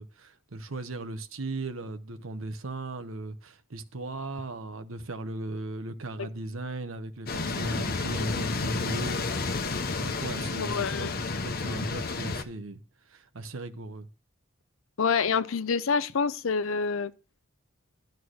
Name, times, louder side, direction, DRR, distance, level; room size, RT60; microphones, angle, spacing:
voice 1, 0.0-9.7 10.0-12.8 13.1-14.1, right 2 dB, 80° right, 0.9 m, -37 dB
sound 1, 7.3-12.4, left 3 dB, 50° left, 1.0 m, -31 dB
voice 2, 10.4-11.1 15.0-17.1, left 5 dB, 80° left, 0.6 m, -27 dB
11.5 x 4.6 x 6.2 m
head